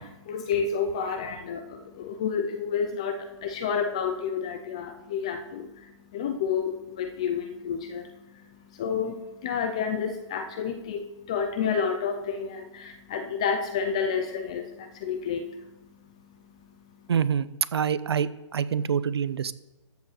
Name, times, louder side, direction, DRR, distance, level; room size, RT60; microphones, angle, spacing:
voice 1, 0.0-17.1, left 6 dB, 10° left, 7 dB, 0.4 m, -30 dB
voice 2, 17.1-19.5, right 7 dB, 55° right, 14 dB, 0.8 m, -26 dB
13.5 x 7.1 x 6.5 m, 1.0 s
hypercardioid pair, 170°, 16 cm